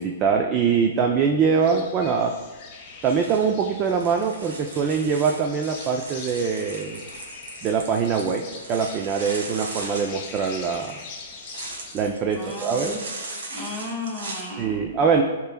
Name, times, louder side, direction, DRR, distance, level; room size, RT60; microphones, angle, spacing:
voice 1, 0.0-2.3 3.0-7.0 7.6-11.0 11.9-13.0 14.6-15.2, right 6 dB, 25° right, 2 dB, 0.4 m, -23 dB
sound 1, 1.5-11.9, left 4 dB, 30° left, 1.3 m, -42 dB
sound 2, 2.9-14.4, right 2 dB, 80° right, 1.6 m, -38 dB
voice 2, 12.3-13.0 13.5-14.9, left 2 dB, 5° right, -2 dB, 1.3 m, -34 dB
11.5 x 4.4 x 2.2 m, 1.2 s
hypercardioid pair, 155°, 0 cm